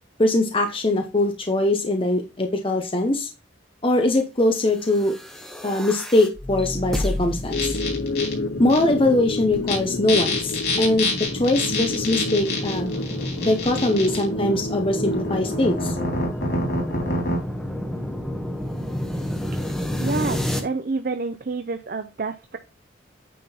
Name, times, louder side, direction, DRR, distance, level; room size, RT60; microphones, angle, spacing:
voice 1, 0.2-3.3 3.8-5.1 5.6-7.8 8.6-12.9 13.4-16.0, left 1 dB, 25° left, 4 dB, 0.9 m, -22 dB
sound 1, 4.8-20.6, left 1 dB, ahead, 1.2 m, -31 dB
sound 2, 7.5-16.5, left 2 dB, 70° left, 0.6 m, -31 dB
sound 3, 7.5-8.3 8.7-8.8 9.5-9.8 10.1-14.2 15.1-17.4, left 2 dB, 55° left, 3.8 m, -27 dB
voice 2, 20.0-22.6, right 3 dB, 50° right, 8 dB, 0.6 m, -28 dB
9.3 x 3.7 x 4.3 m, 0.28 s
head